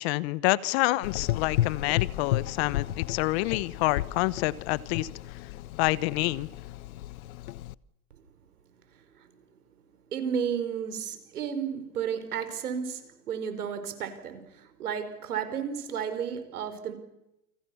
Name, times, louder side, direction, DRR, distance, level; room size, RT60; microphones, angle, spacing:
voice 1, 0.0-5.1 5.7-6.5, left 19 dB, 45° left, 19 dB, 1.1 m, -27 dB
Gurgling / Engine, 1.0-7.7, left 14 dB, 70° left, 0.9 m, -33 dB
voice 2, 10.1-16.9, right 7 dB, 85° right, 9 dB, 5.0 m, -33 dB
29.5 x 24.5 x 7.1 m, 0.90 s
hypercardioid pair, 135°, 44 cm